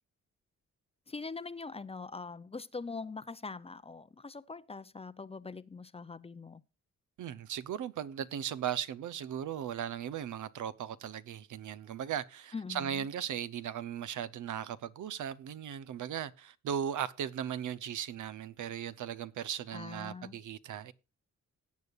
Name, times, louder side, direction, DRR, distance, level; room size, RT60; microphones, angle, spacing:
voice 1, 1.1-6.6 12.5-13.0 19.7-20.4, left 4 dB, 20° left, 0.5 m, -43 dB
voice 2, 7.2-20.9, right 9 dB, 85° right, 0.8 m, -37 dB
17.5 x 8.3 x 2.4 m
cardioid pair, 110°, 29 cm